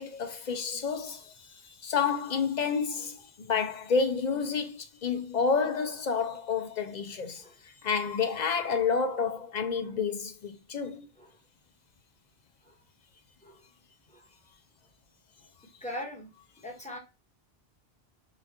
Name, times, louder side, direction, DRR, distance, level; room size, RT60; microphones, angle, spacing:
voice 1, 0.0-1.3 1.6-7.4 7.8-11.1, left 5 dB, 55° left, 0.6 m, -29 dB
voice 2, 2.6-3.1 7.4-7.6 11.2-11.4 12.6-12.8 13.4-13.6 14.1-14.3 15.8-16.3 16.6-17.0, left 1 dB, 5° left, 1.1 m, -42 dB
5.8 x 2.4 x 2.8 m
omnidirectional pair, 1.0 m